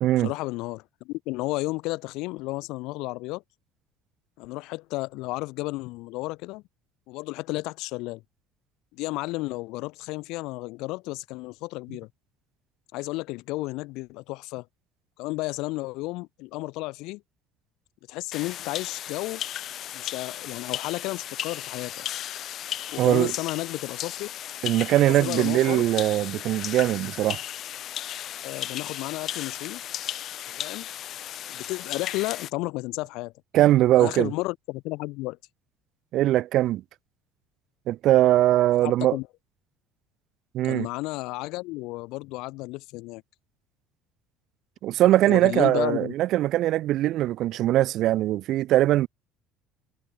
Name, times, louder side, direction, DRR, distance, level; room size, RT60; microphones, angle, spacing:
voice 1, 0.2-3.4 4.4-6.6 7.1-8.2 8.9-12.1 12.9-14.6 15.2-17.2 18.1-19.4 19.9-22.0 22.9-24.3 24.9-25.8 28.4-29.8 30.5-30.9 31.5-33.3 34.0-35.4 38.8-39.3 40.6-43.2 45.2-46.1, left 22 dB, 75° left, 6.1 m, -32 dB
sound 1, 18.3-32.5, left 11 dB, 55° left, 2.4 m, -35 dB
voice 2, 23.0-23.3 24.6-27.4 33.5-34.3 36.1-36.8 37.9-39.2 40.5-40.9 44.8-49.1, right 14 dB, 60° right, 0.5 m, -21 dB
cardioid pair, 110°, 0 cm